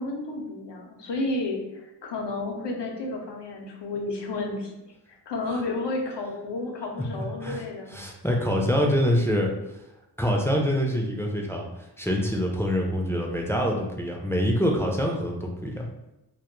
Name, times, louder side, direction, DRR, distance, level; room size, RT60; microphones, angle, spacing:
voice 1, 0.0-4.7 5.3-7.9, left 2 dB, 80° left, 1 dB, 0.6 m, -31 dB
voice 2, 7.9-9.5 10.2-11.7 12.0-15.9, equal, 5° left, -1 dB, 0.4 m, -25 dB
2.2 x 2.1 x 3.0 m, 0.92 s
cardioid pair, 50°, 41 cm